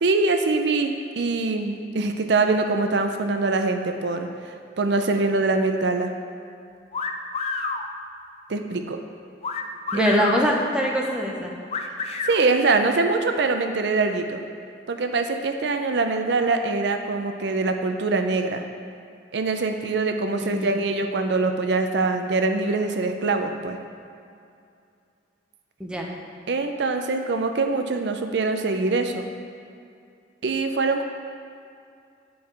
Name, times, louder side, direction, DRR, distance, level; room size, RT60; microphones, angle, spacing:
voice 1, 0.0-4.3 4.8-6.1 8.5-9.0 9.9-10.2 12.2-14.4 14.9-18.6 19.3-23.8 26.5-29.3 30.4-31.0, right 3 dB, 65° right, 6 dB, 0.5 m, -23 dB
sound 1, 6.9-7.8 9.4-10.4 11.7-12.4, left 4 dB, 35° left, 0.4 m, -28 dB
voice 2, 9.9-11.5 20.4-20.7 25.8-26.1, equal, 5° right, -1 dB, 0.8 m, -23 dB
9.3 x 4.6 x 4.6 m, 2.5 s
head